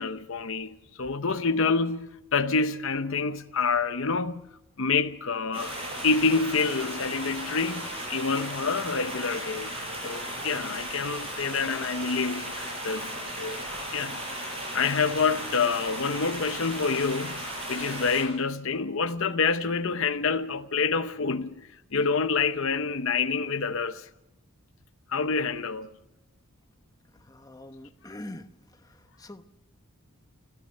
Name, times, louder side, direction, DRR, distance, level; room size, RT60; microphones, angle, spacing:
voice 1, 0.0-4.4 4.8-9.7 10.0-12.5 12.8-13.1 13.4-13.6 13.9-14.2 14.7-17.4 17.7-21.6 21.9-24.1 25.1-25.9, left 4 dB, 60° left, 0.8 m, -27 dB
sound 1, 5.5-18.2, right 1 dB, 25° right, 7.3 m, -36 dB
voice 2, 27.2-28.5 28.8-29.4, left 1 dB, 15° left, 0.8 m, -44 dB
29.0 x 13.5 x 6.6 m
head